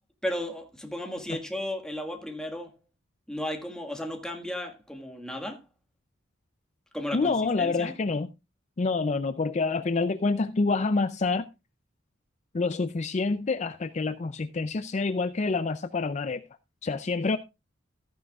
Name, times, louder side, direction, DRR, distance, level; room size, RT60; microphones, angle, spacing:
voice 1, 0.2-2.7 3.3-5.6 6.9-7.9, left 1 dB, 5° left, 1.7 m, -34 dB
voice 2, 7.1-8.3 8.8-11.5 12.5-16.4 16.8-17.4, left 3 dB, 35° left, 0.4 m, -27 dB
14.5 x 10.0 x 2.4 m
head